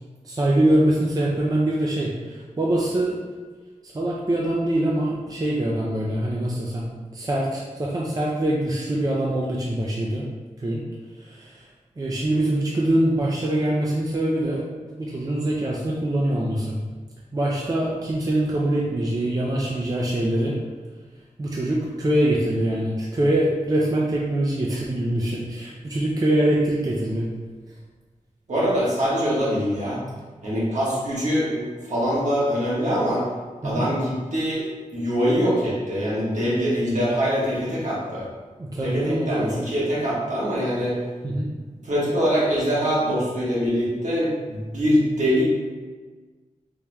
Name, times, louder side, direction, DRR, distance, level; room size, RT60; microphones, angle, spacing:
voice 1, 0.2-3.2 3.8-6.9 7.1-10.2 10.6-10.8 11.2-11.7 12.0-16.8 17.3-20.6 21.4-27.3 33.6-33.9 38.6-39.5 41.2-41.5, right 1 dB, 30° right, -3 dB, 0.4 m, -24 dB
voice 2, 28.5-30.0 30.4-33.3 33.6-34.7 34.9-38.3 38.8-41.0 41.8-45.4, equal, 65° right, -8 dB, 1.4 m, -23 dB
3.5 x 2.9 x 3.4 m, 1.4 s
wide cardioid pair, 115°, 13 cm